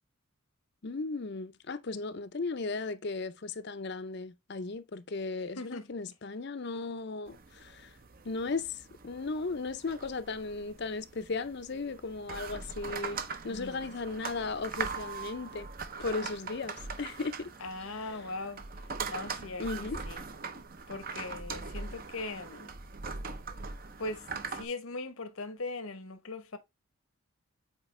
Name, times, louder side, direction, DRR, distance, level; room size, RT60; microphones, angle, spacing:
voice 1, 0.8-7.9 8.2-15.7 16.0-17.5 19.6-20.0, left 3 dB, 50° left, 0.6 m, -36 dB
voice 2, 5.6-5.9 13.4-13.9 17.6-18.6 19.1-20.2 20.9-22.7 24.0-26.6, left 3 dB, 75° left, 1.0 m, -40 dB
sound 1, 7.3-24.6, right 4 dB, 40° right, 0.7 m, -41 dB
7.2 x 4.4 x 3.2 m
head